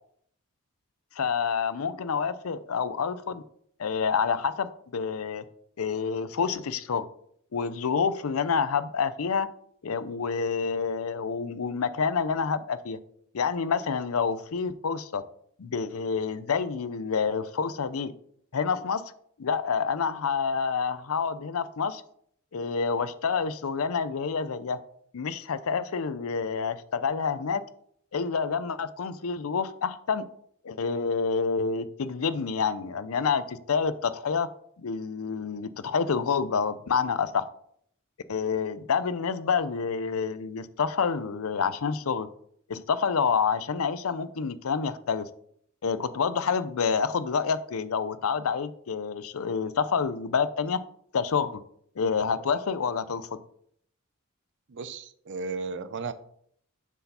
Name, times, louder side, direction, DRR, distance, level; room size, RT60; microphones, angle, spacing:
voice 1, 1.2-3.4 3.8-5.4 5.8-7.1 7.5-9.5 9.8-13.0 13.3-15.2 15.6-18.1 18.5-19.0 19.4-22.0 22.5-24.8 25.1-27.6 28.1-30.2 30.6-34.5 34.8-37.4 38.3-42.3 42.7-45.3 45.8-50.8 51.1-51.6 52.0-53.4, left 5 dB, 85° left, 14 dB, 0.5 m, -28 dB
voice 2, 54.7-56.1, right 4 dB, 60° right, 13 dB, 0.6 m, -34 dB
6.9 x 4.8 x 5.5 m, 0.66 s
head